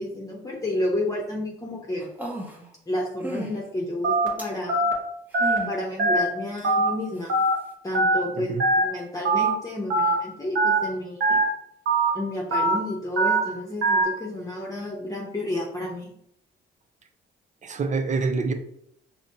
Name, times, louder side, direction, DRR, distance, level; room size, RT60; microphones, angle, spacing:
voice 1, 0.0-2.1 2.9-4.9 5.7-7.4 7.8-8.6 8.8-11.4 12.1-16.1, left 1 dB, 15° left, -3 dB, 0.9 m, -31 dB
Mindy Sounds, 2.0-2.7 3.2-3.5 4.4-4.6 5.3-5.7 6.6-6.7, equal, 10° right, 0.8 m, -33 dB
Telephone, 4.0-4.3 4.7-4.9 5.3-5.6 6.0-6.2 6.6-6.9 7.3-7.5 7.9-8.2 8.6-8.8 9.2-9.5 9.9-10.1 10.5-10.8 11.2-11.4 11.8-12.1 12.5-12.7 13.2-13.4 13.8-14.0, right 2 dB, 70° right, 1.1 m, -21 dB
voice 2, 17.6-18.5, right 4 dB, 35° right, 7 dB, 0.6 m, -26 dB
5.0 x 2.7 x 2.8 m, 0.72 s
cardioid pair, 90°, 20 cm